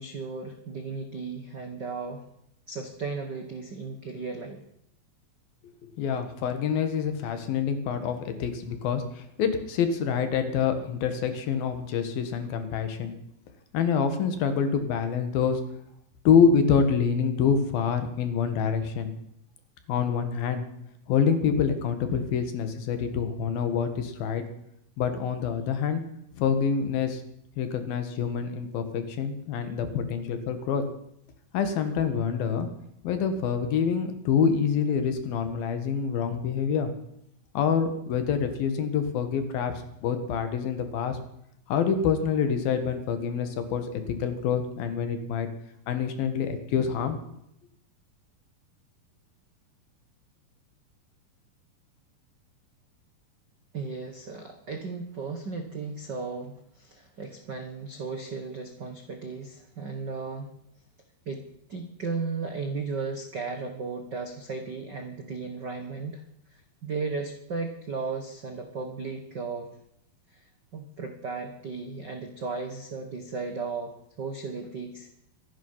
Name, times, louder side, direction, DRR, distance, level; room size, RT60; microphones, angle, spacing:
voice 1, 0.0-2.2 2.7-4.6 53.7-60.5 61.2-61.4 61.7-66.2 66.5-69.7 70.3-70.4 70.7-75.1, right 4 dB, 85° right, 5 dB, 0.9 m, -35 dB
voice 2, 6.0-13.2 13.7-15.6 16.3-19.1 19.9-20.7 21.1-24.4 25.0-26.0 26.3-27.2 27.6-30.8 31.5-32.7 33.0-36.9 37.6-41.2 41.7-45.5 45.9-47.2, left 6 dB, 75° left, 8 dB, 3.5 m, -26 dB
24.5 x 10.5 x 5.7 m, 0.77 s
omnidirectional pair, 4.2 m